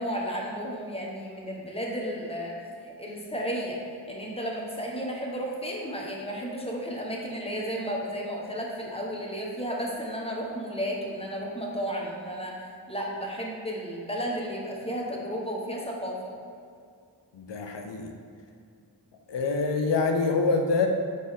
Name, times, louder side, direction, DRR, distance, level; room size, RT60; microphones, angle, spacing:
voice 1, 0.0-2.6 2.8-3.8 4.1-16.3, equal, 15° left, -3 dB, 1.1 m, -33 dB
voice 2, 17.3-18.1 19.3-20.9, left 4 dB, 80° left, 3 dB, 0.7 m, -25 dB
6.4 x 4.2 x 3.6 m, 2.3 s
wide cardioid pair, 60°, 42 cm